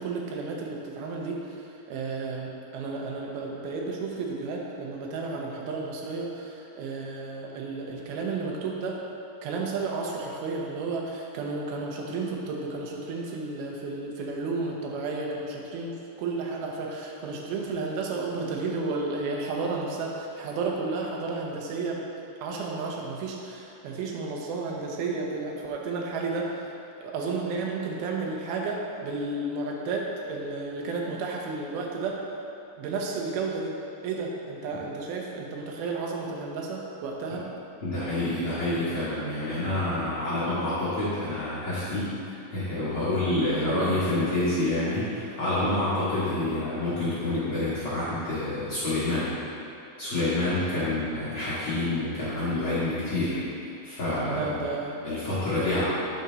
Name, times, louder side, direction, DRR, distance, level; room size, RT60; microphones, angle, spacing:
voice 1, 0.0-9.0 9.4-22.0 22.4-32.2 32.8-33.8 34.0-37.5 43.5-43.8 54.3-55.0 55.5-55.8, right 3 dB, 75° right, -1 dB, 2.4 m, -32 dB
voice 2, 37.8-49.3 50.0-53.4 53.8-54.6 55.0-55.8, left 2 dB, 85° left, -12 dB, 1.1 m, -28 dB
10.5 x 5.2 x 4.0 m, 2.8 s
omnidirectional pair, 5.3 m